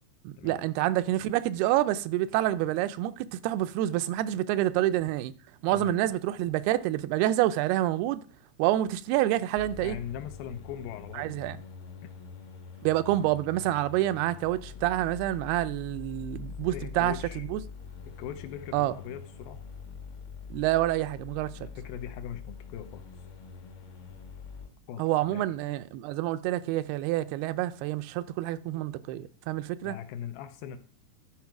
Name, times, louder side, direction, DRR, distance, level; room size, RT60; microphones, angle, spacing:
voice 1, 0.3-5.3 5.6-8.2 8.6-10.0 11.2-11.6 12.8-17.1 17.5-17.6 18.7-18.9 20.5-21.5 25.0-30.0, right 14 dB, 85° right, 2.5 m, -27 dB
sound 1, 9.6-24.7, left 6 dB, 60° left, 1.4 m, -44 dB
voice 2, 9.8-11.3 12.0-12.1 16.6-17.4 18.2-19.6 21.6-23.1 24.9-25.4 29.8-30.8, left 9 dB, 80° left, 2.3 m, -40 dB
12.0 x 4.5 x 5.9 m
omnidirectional pair, 4.5 m